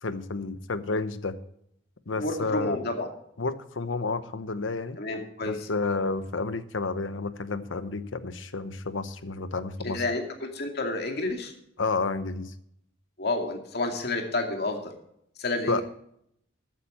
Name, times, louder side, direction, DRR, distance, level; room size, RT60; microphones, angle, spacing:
voice 1, 0.0-1.4 2.1-2.8 3.4-5.0 5.4-10.0 11.8-12.5 15.7-15.8, left 3 dB, 85° left, 13 dB, 1.0 m, -30 dB
voice 2, 2.2-3.1 5.0-5.7 9.8-11.5 13.2-14.9 15.4-15.8, left 2 dB, 55° left, 3 dB, 2.4 m, -30 dB
14.0 x 9.3 x 4.3 m, 0.72 s
head